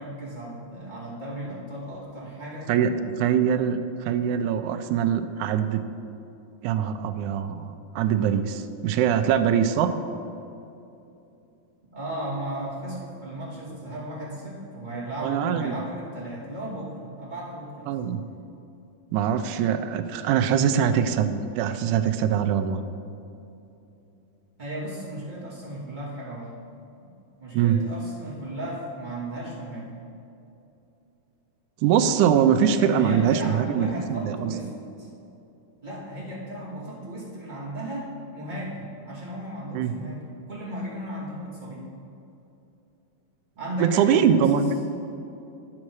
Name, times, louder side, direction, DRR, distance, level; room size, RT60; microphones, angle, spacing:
voice 1, 0.0-3.0 11.9-18.0 24.6-26.5 27.4-29.9 32.7-34.7 35.0-35.1 35.8-38.1 38.3-41.9 43.6-44.7, right 1 dB, 15° right, -9 dB, 2.2 m, -35 dB
voice 2, 3.2-5.8 6.6-9.9 15.2-15.8 17.9-18.2 19.1-22.8 27.5-27.8 31.8-34.5 39.7-39.9 43.8-44.7, right 8 dB, 80° right, 9 dB, 2.0 m, -23 dB
9.6 x 7.4 x 4.7 m, 2.8 s
omnidirectional pair, 3.5 m